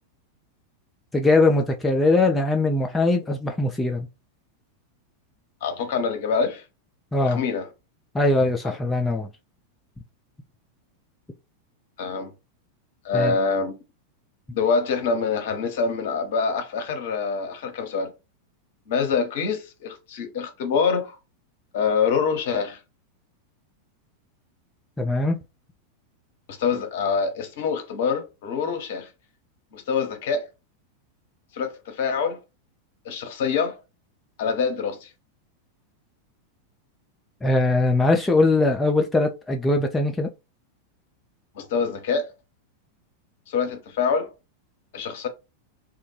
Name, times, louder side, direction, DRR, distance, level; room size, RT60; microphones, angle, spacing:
voice 1, 1.1-4.1 7.1-7.4 8.1-9.3 13.1-13.3 25.0-25.4 37.4-40.3, left 2 dB, 10° left, 0.3 m, -21 dB
voice 2, 5.6-6.6 7.2-7.7 8.6-8.7 12.0-12.3 13.0-13.7 14.5-18.1 18.9-21.2 21.7-22.8 26.5-29.1 29.7-30.5 31.5-32.4 33.0-33.8 34.4-35.1 41.5-42.3 43.5-44.3 44.9-45.3, left 5 dB, 55° left, 0.7 m, -25 dB
2.3 x 2.1 x 3.1 m
figure-of-eight pair, 90°, 0 cm